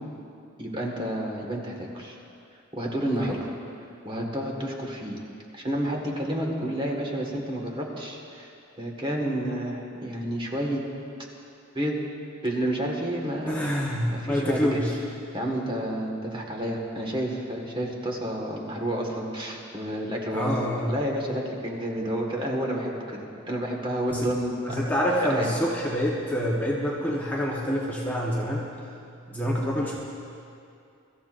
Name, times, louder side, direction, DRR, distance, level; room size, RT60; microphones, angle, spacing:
voice 1, 0.6-2.2 2.7-3.5 4.1-5.2 5.5-8.5 8.8-10.8 11.7-12.0 12.4-13.7 14.1-14.8 15.3-20.5 20.9-24.8 25.3-25.5, right 1 dB, 25° right, -1 dB, 1.7 m, -30 dB
voice 2, 13.5-15.0 20.3-21.0 24.1-24.3 24.6-28.7 29.3-30.0, equal, 10° left, -4 dB, 1.1 m, -26 dB
23.5 x 13.5 x 2.6 m, 2.5 s
head